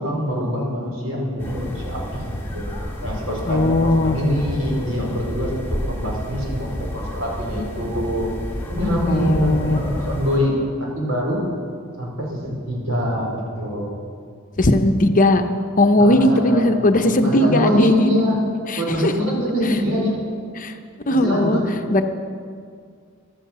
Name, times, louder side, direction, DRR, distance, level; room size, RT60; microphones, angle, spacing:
voice 1, 0.0-2.7 3.0-8.3 8.7-10.7 11.0-11.4 12.0-13.9 16.0-18.4 18.7-20.3 21.1-21.7, equal, 70° right, -2 dB, 4.9 m, -24 dB
sound 1, 1.4-10.4, equal, 10° left, 3.1 m, -30 dB
voice 2, 3.5-4.2 9.1-9.8 14.6-15.4 15.8-17.9 18.7-19.1 20.6-20.7 21.1-21.6 21.9-22.0, left 1 dB, 40° left, 7 dB, 0.9 m, -17 dB
14.5 x 12.5 x 7.5 m, 2.2 s
head